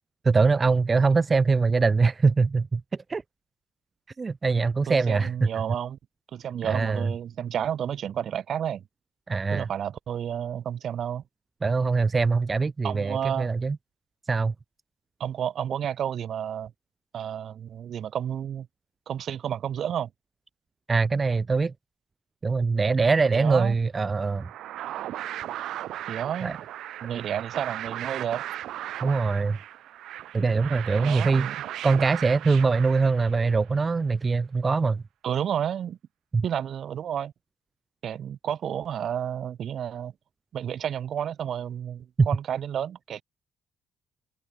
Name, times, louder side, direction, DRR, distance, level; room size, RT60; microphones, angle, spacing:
voice 1, 0.2-2.8 3.1-3.2 4.2-5.5 6.6-7.1 9.3-9.7 11.6-13.8 14.3-14.5 20.9-21.7 22.4-24.5 26.4-26.5 29.0-29.6 30.3-31.5 31.8-35.0 36.3-36.4 42.2-42.3, right 4 dB, 30° right, 0.5 m, -23 dB
voice 2, 4.9-6.0 6.3-8.8 9.5-11.2 12.8-13.5 15.2-16.7 17.1-18.7 19.1-20.1 23.4-23.7 26.1-26.6 27.0-28.4 31.0-31.6 35.2-36.0 36.4-37.3 38.0-40.1 40.5-43.2, right 9 dB, 65° right, 0.9 m, -31 dB
sound 1, 24.2-33.6, right 13 dB, 80° right, 1.6 m, -37 dB
cardioid pair, 90°, 0 cm